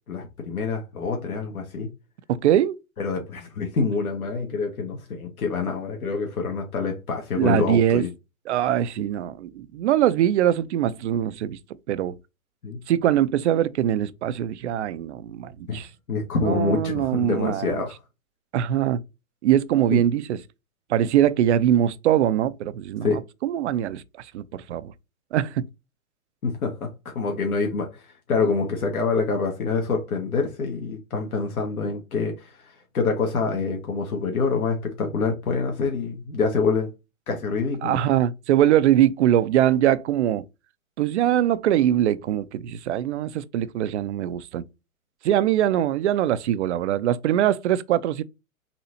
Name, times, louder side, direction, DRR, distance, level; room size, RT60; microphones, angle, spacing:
voice 1, 0.1-1.9 3.0-8.1 12.6-12.8 15.7-17.9 19.9-20.0 23.0-23.2 26.4-36.9 37.3-38.0, left 4 dB, 80° left, 1.3 m, -26 dB
voice 2, 2.3-2.8 7.4-8.0 8.5-11.6 11.9-12.1 12.9-15.9 16.4-17.8 18.5-19.0 19.4-20.4 20.9-23.1 23.4-24.9 25.3-25.6 37.8-40.4 41.0-44.6 45.2-48.2, right 11 dB, 55° right, 0.5 m, -22 dB
4.3 x 2.6 x 4.1 m
hypercardioid pair, 125°, 43 cm